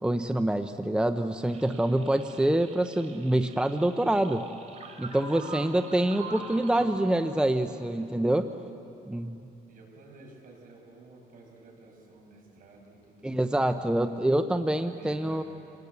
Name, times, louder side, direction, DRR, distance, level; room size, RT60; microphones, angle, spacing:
voice 1, 0.0-4.5 5.0-8.5 9.1-9.5 13.2-15.4, right 1 dB, 5° right, 8 dB, 0.7 m, -26 dB
sound 1, 1.5-6.9, right 4 dB, 45° right, 2.9 m, -44 dB
voice 2, 4.9-8.1 9.7-13.8 14.8-15.4, right 2 dB, 60° right, 1 dB, 6.3 m, -52 dB
28.0 x 19.0 x 8.2 m, 2.7 s
cardioid pair, 120°, 16 cm